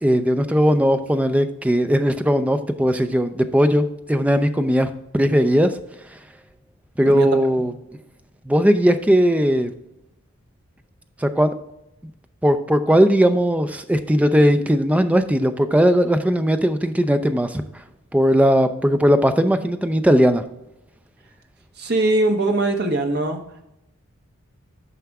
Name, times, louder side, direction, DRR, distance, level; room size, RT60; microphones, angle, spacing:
voice 1, 0.0-5.7 7.0-7.7 8.5-9.7 11.2-11.5 12.4-17.6 18.1-20.4, equal, 5° right, 8 dB, 0.4 m, -18 dB
voice 2, 21.8-23.4, right 2 dB, 50° right, 4 dB, 1.1 m, -21 dB
9.3 x 5.8 x 3.5 m, 0.86 s
head